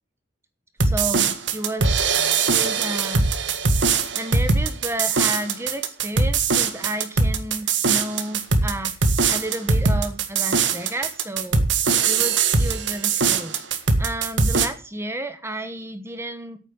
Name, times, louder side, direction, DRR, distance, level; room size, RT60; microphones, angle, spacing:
voice 1, 0.8-2.0 2.5-3.4 4.1-13.6 14.0-16.6, right 1 dB, 15° right, 9 dB, 1.1 m, -32 dB
sound 1, 0.8-14.7, right 4 dB, 80° right, 1.7 m, -21 dB
9.0 x 8.8 x 7.9 m, 0.37 s
head